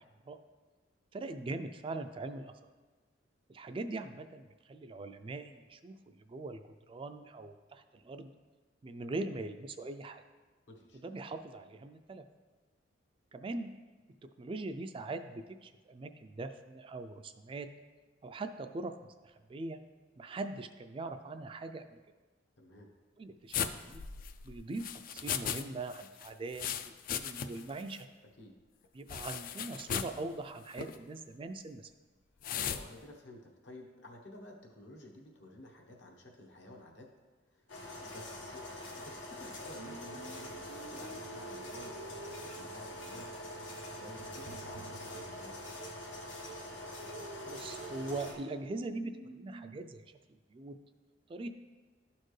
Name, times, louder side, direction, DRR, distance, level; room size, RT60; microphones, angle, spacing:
voice 1, 1.1-2.5 3.5-8.3 8.8-10.2 10.9-12.2 13.3-13.7 14.4-17.7 18.2-19.8 20.2-22.0 23.2-24.0 24.4-28.1 28.9-31.9 47.5-50.0 50.3-50.8 51.3-51.5, right 2 dB, 30° right, 8 dB, 0.3 m, -41 dB
voice 2, 10.7-11.0 22.6-22.9 28.4-28.5 32.5-37.1 37.5-37.6 38.0-38.6 39.0-43.3 43.5-45.8, left 1 dB, 65° left, 1 dB, 1.1 m, -52 dB
sound 1, 23.5-25.6 25.9-27.7 28.0-28.1 29.1-30.2 30.7-31.0 32.4-32.8, left 8 dB, 50° left, 0.3 m, -37 dB
sound 2, 37.7-48.3, left 1 dB, 90° left, 1.2 m, -45 dB
sound 3, 39.8-49.8, right 4 dB, 75° right, 0.6 m, -49 dB
12.5 x 4.4 x 3.2 m, 1.3 s
head